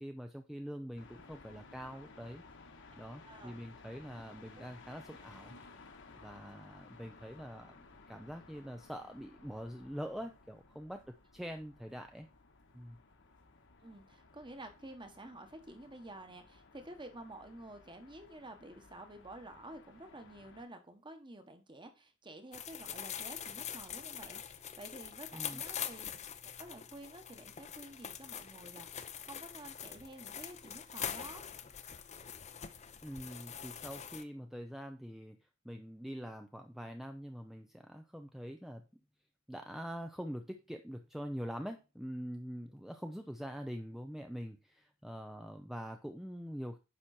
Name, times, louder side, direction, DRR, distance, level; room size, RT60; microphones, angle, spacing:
voice 1, 0.0-2.4 2.9-5.6 6.2-7.8 8.1-12.3 12.7-13.0 25.3-25.6 33.0-35.4 35.6-39.0 39.5-46.8, equal, ahead, 5 dB, 0.6 m, -44 dB
sound 1, 1.0-20.6, left 3 dB, 60° left, 1.5 m, -58 dB
voice 2, 3.2-3.6 4.5-4.6 13.8-26.1 26.6-31.4, right 1 dB, 25° right, 7 dB, 1.4 m, -51 dB
sound 2, 22.5-34.2, left 8 dB, 35° left, 0.7 m, -44 dB
9.9 x 6.1 x 4.3 m, 0.28 s
head